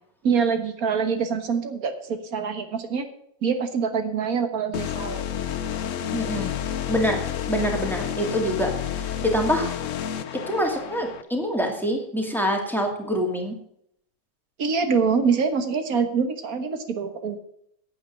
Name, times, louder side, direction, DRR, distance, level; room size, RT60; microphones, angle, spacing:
voice 1, 0.2-3.1 3.4-5.2 14.6-17.4, right 5 dB, 55° right, 8 dB, 1.7 m, -25 dB
sound 1, 4.7-11.2, left 9 dB, 60° left, 0.9 m, -30 dB
voice 2, 6.1-6.6 6.9-8.7 9.0-9.7 10.5-13.6, equal, ahead, 2 dB, 2.1 m, -25 dB
9.0 x 8.7 x 6.4 m, 0.72 s
omnidirectional pair, 1.9 m